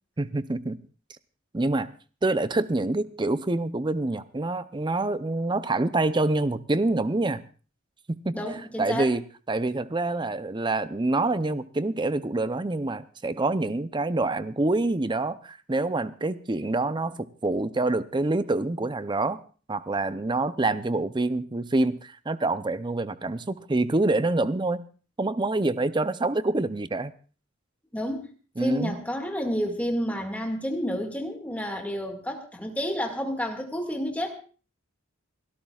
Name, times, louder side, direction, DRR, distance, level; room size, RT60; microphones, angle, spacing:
voice 1, 0.2-0.8 1.5-1.9 2.2-7.4 8.1-8.4 8.8-9.2 9.5-19.4 19.7-24.9 25.2-27.1 28.6-28.9, right 2 dB, 20° right, 13 dB, 0.6 m, -26 dB
voice 2, 8.3-9.1 27.9-28.3 28.6-34.3, equal, 5° left, 3 dB, 2.0 m, -30 dB
29.0 x 13.0 x 2.4 m, 0.38 s
head